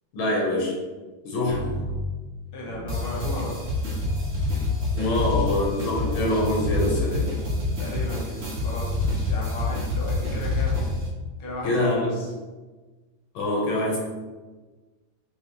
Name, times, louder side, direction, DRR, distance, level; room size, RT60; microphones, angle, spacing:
voice 1, 0.1-0.7 1.2-1.6 4.9-7.3 11.6-12.1 13.3-14.0, left 1 dB, 90° left, -3 dB, 1.7 m, -25 dB
sound 1, 1.5-2.1 2.6-5.7 6.0-6.9 7.4-10.5 10.8-11.1, equal, 70° right, 0.9 m, -33 dB
voice 2, 2.5-3.5 5.1-5.5 7.8-10.8 11.4-12.3, left 1 dB, 45° left, -4 dB, 0.8 m, -36 dB
sound 2, 2.9-11.1, left 2 dB, 45° right, 0.9 m, -27 dB
4.7 x 2.2 x 2.9 m, 1.3 s
omnidirectional pair, 2.1 m